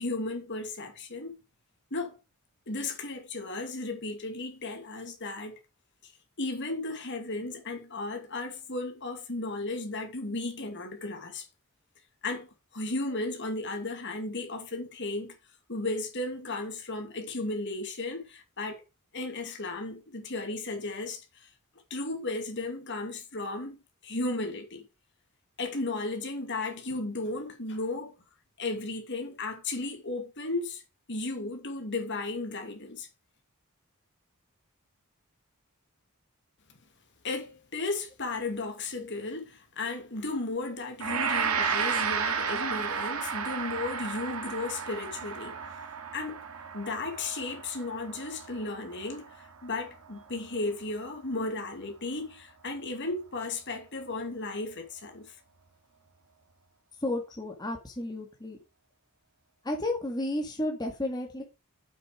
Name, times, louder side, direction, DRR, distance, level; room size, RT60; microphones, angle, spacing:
voice 1, 0.0-1.4 1.9-2.1 2.7-5.6 6.0-6.1 6.4-11.5 12.2-15.3 15.7-18.8 19.1-21.5 21.9-23.8 24.0-24.8 25.6-28.2 28.6-30.8 31.1-33.1 37.2-45.6 46.1-46.4 46.7-55.4, left 2 dB, 55° left, 2.5 m, -35 dB
Gong, 41.0-50.2, right 6 dB, 80° right, 2.0 m, -33 dB
voice 2, 57.0-58.6 59.6-61.4, left 1 dB, 20° left, 1.9 m, -32 dB
7.8 x 6.9 x 5.0 m
head